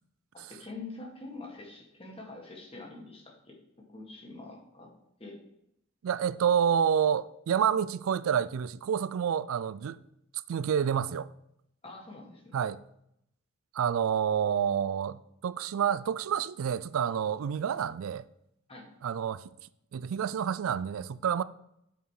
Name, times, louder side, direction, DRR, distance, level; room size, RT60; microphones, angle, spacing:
voice 1, 0.3-3.6 3.9-4.9 5.2-5.4 11.8-12.6 18.7-18.9, left 3 dB, 30° left, 1.8 m, -45 dB
voice 2, 6.0-10.0 10.5-11.3 12.5-12.8 13.7-18.2 19.0-19.4 19.9-21.4, right 8 dB, 85° right, 0.4 m, -28 dB
8.0 x 5.1 x 4.8 m
head